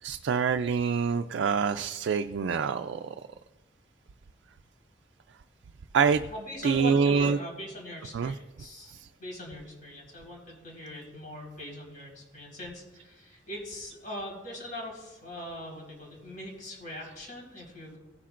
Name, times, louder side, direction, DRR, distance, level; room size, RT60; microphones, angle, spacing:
voice 1, 0.0-3.2 5.9-6.2 6.6-7.4 8.1-8.3 8.9-9.1, right 6 dB, 90° right, 6 dB, 0.4 m, -26 dB
voice 2, 6.3-18.0, left 1 dB, 50° left, -2 dB, 4.3 m, -41 dB
17.0 x 10.0 x 2.5 m, 1.1 s
head